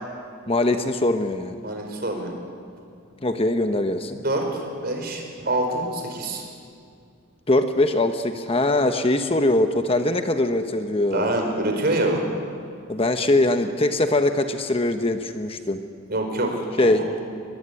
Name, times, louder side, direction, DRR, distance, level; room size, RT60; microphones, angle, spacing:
voice 1, 0.5-1.6 3.2-4.2 7.5-11.4 12.9-15.8 16.8-17.0, left 2 dB, 25° left, 7 dB, 1.0 m, -22 dB
voice 2, 1.6-2.3 4.2-6.4 11.1-12.2 16.1-16.9, right 1 dB, 50° right, 3 dB, 5.0 m, -25 dB
23.0 x 21.5 x 9.8 m, 2.3 s
head